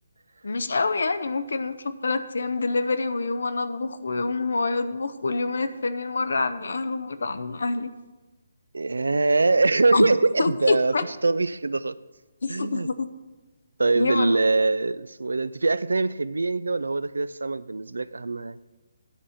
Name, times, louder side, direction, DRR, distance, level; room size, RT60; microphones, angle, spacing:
voice 1, 0.4-7.9 9.9-10.1 10.4-11.0 12.4-13.1 14.0-14.4, left 3 dB, 65° left, 0.6 m, -26 dB
voice 2, 8.7-10.9 11.2-12.0 12.5-12.9 13.8-18.6, right 3 dB, 70° right, 0.3 m, -23 dB
10.0 x 4.9 x 7.0 m
figure-of-eight pair, 140°, 0 cm